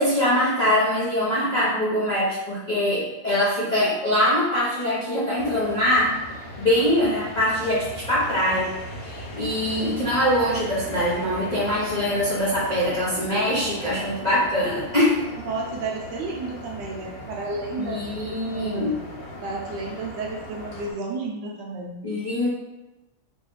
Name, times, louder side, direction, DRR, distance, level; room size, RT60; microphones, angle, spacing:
voice 1, 0.0-6.1 6.6-8.7 9.0-15.2 17.8-18.9 22.0-22.5, left 1 dB, 55° left, -10 dB, 0.4 m, -23 dB
sound 1, 5.4-20.9, left 1 dB, 80° left, 1.6 m, -38 dB
voice 2, 7.0-7.4 15.4-18.9 19.4-22.0, right 3 dB, 75° right, -1 dB, 1.1 m, -32 dB
3.1 x 3.0 x 3.1 m, 0.99 s
omnidirectional pair, 2.1 m